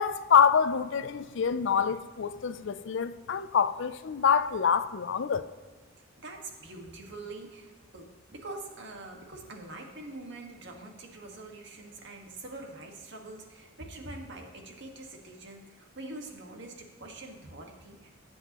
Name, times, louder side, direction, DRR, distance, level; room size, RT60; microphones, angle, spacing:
voice 1, 0.0-5.4, left 7 dB, 65° left, 0.5 m, -26 dB
voice 2, 6.0-18.1, right 2 dB, 65° right, 1.7 m, -44 dB
20.0 x 7.9 x 3.0 m
head